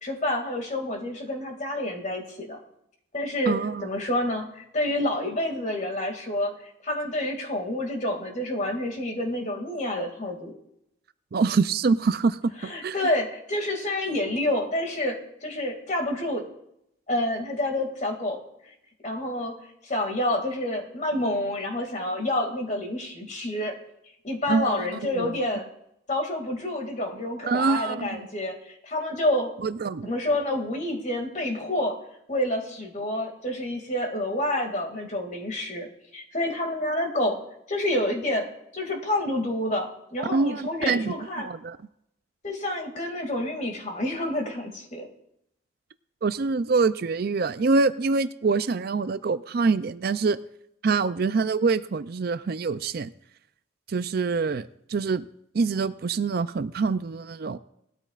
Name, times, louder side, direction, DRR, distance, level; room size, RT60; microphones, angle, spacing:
voice 1, 0.0-2.6 3.1-4.5 4.7-6.5 6.8-10.5 12.6-15.2 15.4-16.4 17.1-18.4 19.0-19.5 19.8-23.7 24.2-25.7 26.1-28.6 28.8-29.5 30.0-31.9 32.3-35.9 36.1-37.4 37.7-38.5 38.7-41.5 42.4-45.1, left 1 dB, 40° left, 3 dB, 2.3 m, -28 dB
voice 2, 3.5-3.8 11.3-13.0 24.5-25.4 27.5-28.2 29.6-30.1 40.3-41.8 46.2-50.4 50.8-53.1 53.9-55.2 55.5-57.6, right 4 dB, 50° right, 13 dB, 0.4 m, -25 dB
19.0 x 13.0 x 2.5 m, 0.77 s
head